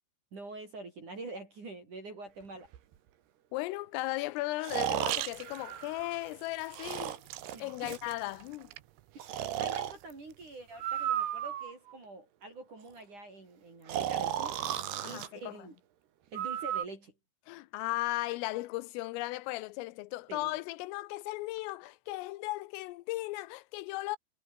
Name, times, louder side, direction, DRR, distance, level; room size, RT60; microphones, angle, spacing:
voice 1, 0.3-2.7 7.5-8.0 9.6-14.6 15.0-15.8 16.3-17.1 20.3-20.6, right 3 dB, 35° right, 7.5 m, -45 dB
Breathing, 2.7-2.8 4.6-6.3 6.8-8.1 9.2-10.0 10.8-11.9 13.9-15.3 16.4-16.9, right 11 dB, 60° right, 3.6 m, -34 dB
voice 2, 3.5-7.1 7.6-8.7 15.0-15.6 17.5-24.2, left 19 dB, 80° left, 3.5 m, -36 dB
sound 1, 5.0-10.8, right 17 dB, 90° right, 3.8 m, -45 dB
omnidirectional pair, 6.0 m